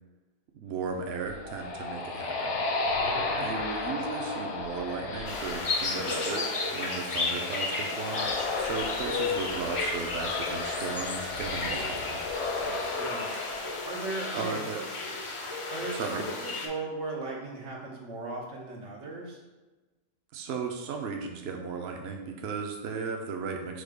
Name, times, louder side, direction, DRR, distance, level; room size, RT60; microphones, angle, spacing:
voice 1, 0.6-2.6 3.4-6.4 6.7-8.3 8.6-12.2 14.3-14.8 15.9-16.2 20.3-23.8, right 5 dB, 65° right, 3 dB, 0.7 m, -35 dB
sound 1, 1.1-14.6, left 3 dB, 75° left, 1.0 m, -34 dB
voice 2, 3.0-3.6 12.6-13.3 13.8-14.8 15.7-19.4, right 3 dB, 90° right, -2 dB, 1.3 m, -38 dB
sound 2, 5.3-16.7, left 3 dB, 45° left, 0.4 m, -33 dB
4.9 x 2.2 x 4.8 m, 1.2 s
omnidirectional pair, 1.2 m